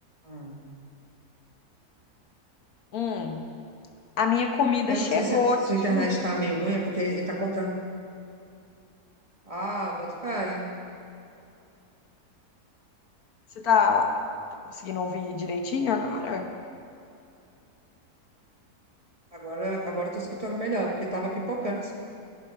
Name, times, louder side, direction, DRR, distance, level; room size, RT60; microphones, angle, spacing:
voice 1, 0.2-0.6 4.9-7.7 9.5-10.7 19.3-21.9, right 1 dB, 25° right, -2 dB, 1.2 m, -29 dB
voice 2, 2.9-3.4 4.2-5.6 5.9-6.1 13.6-14.1 14.8-16.5, left 5 dB, 70° left, 4 dB, 1.4 m, -25 dB
13.5 x 8.8 x 5.8 m, 2.5 s
omnidirectional pair, 1.7 m